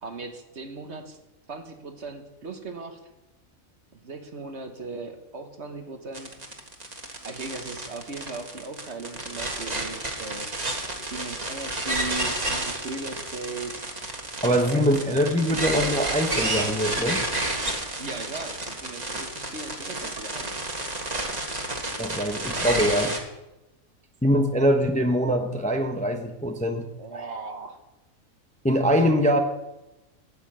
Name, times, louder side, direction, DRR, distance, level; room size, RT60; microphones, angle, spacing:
voice 1, 0.0-1.2 1.5-3.0 3.9-6.4 7.2-10.5 11.0-13.7 14.5-15.4 18.0-20.5 27.0-27.8, right 3 dB, 55° right, 5 dB, 1.5 m, -38 dB
sound 1, 6.1-23.2, right 2 dB, 30° right, 1.7 m, -30 dB
voice 2, 14.4-17.2 22.0-23.2 24.2-26.8 28.6-29.4, equal, 5° left, 5 dB, 0.7 m, -23 dB
9.7 x 9.0 x 7.5 m, 0.99 s
omnidirectional pair, 1.4 m